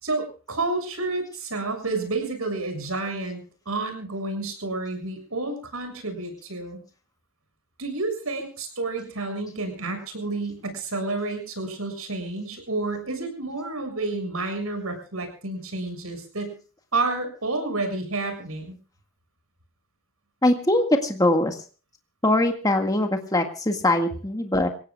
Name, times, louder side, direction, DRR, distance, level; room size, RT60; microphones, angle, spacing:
voice 1, 0.0-6.8 7.8-16.5 16.9-18.7, right 3 dB, 85° right, 7 dB, 6.9 m, -30 dB
voice 2, 20.4-21.6 22.2-24.7, left 1 dB, 15° left, 4 dB, 1.9 m, -22 dB
27.5 x 17.0 x 2.4 m, 0.39 s
head